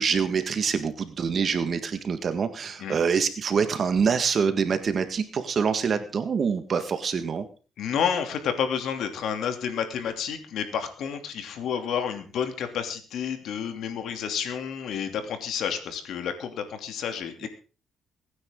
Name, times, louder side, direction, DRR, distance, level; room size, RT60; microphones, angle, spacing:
voice 1, 0.0-7.4, right 6 dB, 45° right, 9 dB, 1.7 m, -25 dB
voice 2, 7.8-17.5, left 7 dB, 75° left, 7 dB, 2.8 m, -30 dB
23.5 x 9.7 x 3.8 m, 0.36 s
cardioid pair, 105°, 0 cm